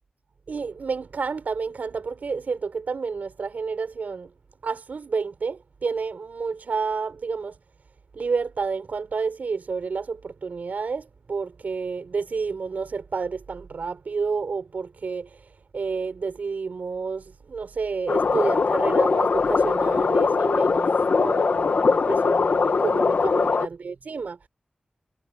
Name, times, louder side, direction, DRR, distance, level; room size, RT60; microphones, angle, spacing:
voice 1, 0.5-4.3 4.6-7.6 8.1-24.4, right 5 dB, 80° right, 4.2 m, -30 dB
sound 1, 18.1-23.7, left 4 dB, 70° left, 1.4 m, -21 dB
wide cardioid pair, 95°, 3 cm